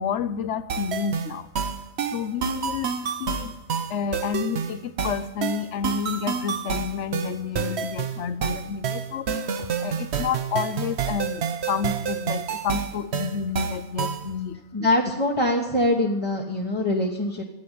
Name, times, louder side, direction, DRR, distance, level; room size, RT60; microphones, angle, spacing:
voice 1, 0.0-1.5 2.1-2.9 3.2-3.5 3.9-9.3 9.8-14.6, left 7 dB, 60° left, 14 dB, 0.9 m, -29 dB
sound 1, 0.7-14.3, right 7 dB, 55° right, 1.0 m, -29 dB
voice 2, 14.7-17.4, left 1 dB, 20° left, -3 dB, 1.2 m, -23 dB
12.0 x 8.8 x 9.3 m, 0.96 s
omnidirectional pair, 1.5 m